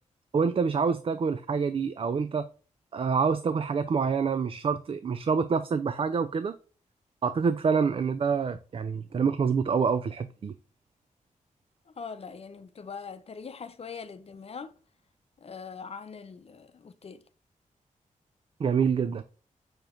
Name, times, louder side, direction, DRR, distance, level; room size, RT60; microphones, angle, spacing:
voice 1, 0.3-2.5 2.9-6.5 7.2-10.5 18.6-19.2, right 5 dB, 45° right, 0.4 m, -26 dB
voice 2, 11.9-14.7 15.4-17.2, left 5 dB, 50° left, 0.7 m, -42 dB
6.7 x 3.0 x 2.5 m
cardioid pair, 75°, 13 cm